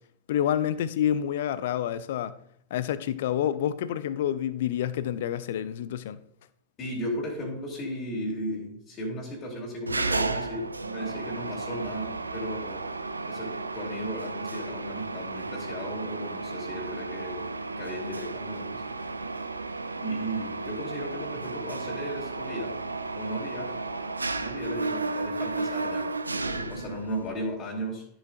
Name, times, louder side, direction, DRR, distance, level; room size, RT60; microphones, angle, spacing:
voice 1, 0.3-2.4 2.7-6.2, left 10 dB, 55° left, 0.5 m, -28 dB
voice 2, 6.8-12.9 13.3-17.5 17.8-18.8 20.0-22.8 23.2-23.8 24.4-28.1, equal, 30° left, 2.4 m, -35 dB
Mechanisms, 9.9-27.3, right 3 dB, 80° right, 0.5 m, -33 dB
12.5 x 7.2 x 2.4 m
figure-of-eight pair, 90°, 0 cm